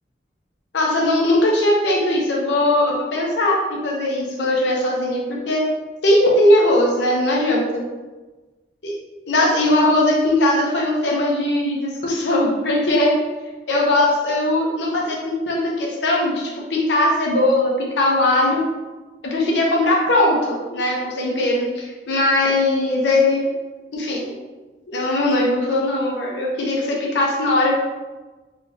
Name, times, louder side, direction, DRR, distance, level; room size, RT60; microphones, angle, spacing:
voice 1, 0.7-5.6 6.0-7.9 8.8-8.9 9.3-13.1 13.7-18.6 19.2-23.5 23.9-24.3 24.9-27.8, left 1 dB, 75° left, -2 dB, 0.7 m, -19 dB
3.3 x 3.2 x 2.7 m, 1.2 s
head